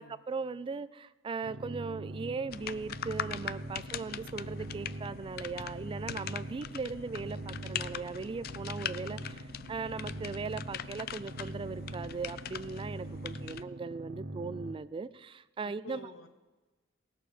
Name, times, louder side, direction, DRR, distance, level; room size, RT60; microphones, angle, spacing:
voice 1, 0.0-16.0, right 4 dB, 25° right, 16 dB, 0.3 m, -39 dB
sound 1, 1.4-14.7, right 1 dB, 60° right, 0.8 m, -43 dB
sound 2, 2.5-13.6, left 9 dB, 50° left, 0.4 m, -42 dB
voice 2, 13.3-13.7 15.6-16.3, left 3 dB, 90° left, 7 dB, 1.2 m, -50 dB
18.5 x 6.7 x 5.0 m, 1.2 s
head